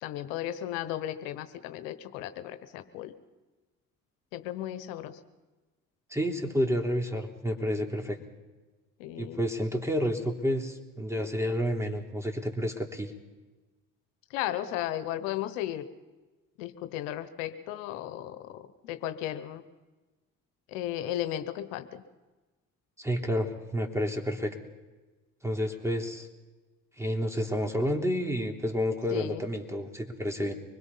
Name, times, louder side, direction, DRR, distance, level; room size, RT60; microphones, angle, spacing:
voice 1, 0.0-3.1 4.3-5.2 9.0-9.4 14.3-15.9 16.6-19.6 20.7-22.0 29.1-29.5, left 12 dB, 90° left, 11 dB, 1.1 m, -35 dB
voice 2, 6.1-8.2 9.2-13.1 23.0-24.6 25.4-26.3 27.0-30.5, equal, 5° right, 3 dB, 3.5 m, -30 dB
25.0 x 21.0 x 5.6 m, 1.2 s
hypercardioid pair, 55°, 38 cm